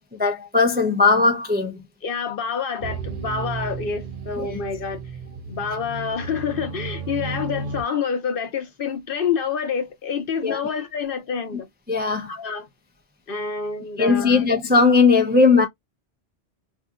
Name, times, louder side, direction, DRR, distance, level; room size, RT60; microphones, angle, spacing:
voice 1, 0.2-1.8 4.4-4.6 10.4-10.6 11.9-12.3 14.0-15.7, left 4 dB, 15° right, 0.4 m, -18 dB
voice 2, 2.0-5.0 5.5-11.7 12.3-12.7 13.3-14.5, left 6 dB, 55° left, 0.9 m, -27 dB
sound 1, 2.8-7.8, right 4 dB, 55° right, 0.7 m, -33 dB
2.7 x 2.3 x 3.6 m
omnidirectional pair, 1.1 m